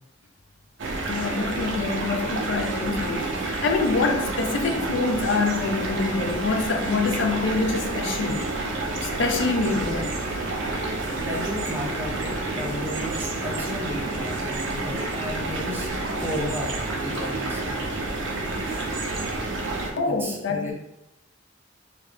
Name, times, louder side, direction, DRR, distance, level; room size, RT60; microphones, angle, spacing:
sound 1, 0.8-19.9, right 2 dB, 75° right, 0.6 m, -29 dB
voice 1, 1.1-8.5 9.0-10.1 20.0-20.7, left 3 dB, 75° left, 0.4 m, -26 dB
voice 2, 11.2-15.9 16.2-17.8 20.1-20.7, left 1 dB, 10° right, 0.6 m, -34 dB
3.1 x 2.3 x 3.3 m
head